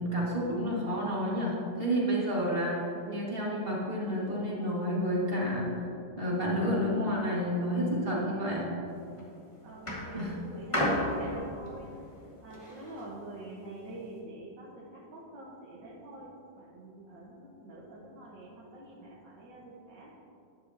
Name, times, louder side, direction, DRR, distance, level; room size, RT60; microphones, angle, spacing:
voice 1, 0.0-2.8 3.1-5.7 6.2-8.7 10.1-10.3, equal, 30° right, -5 dB, 2.2 m, -30 dB
sound 1, 8.8-9.2 9.9-13.1 13.9-14.0, left 1 dB, 15° left, 1.7 m, -33 dB
voice 2, 9.6-11.9 12.4-20.1, right 1 dB, 65° right, -7 dB, 2.0 m, -46 dB
12.0 x 10.0 x 2.9 m, 2.7 s
omnidirectional pair, 2.0 m